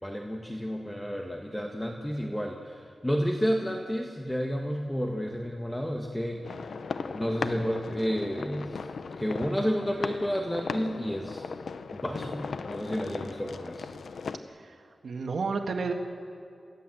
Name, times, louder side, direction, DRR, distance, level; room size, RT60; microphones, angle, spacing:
voice 1, 0.0-6.6 7.1-8.8 9.2-11.5 11.9-13.9, equal, 10° left, 2 dB, 1.5 m, -31 dB
sound 1, 6.4-14.4, left 5 dB, 85° left, 0.9 m, -37 dB
voice 2, 15.0-15.9, right 4 dB, 80° right, 4 dB, 1.6 m, -30 dB
27.5 x 16.5 x 7.8 m, 2.3 s
wide cardioid pair, 95°, 0 cm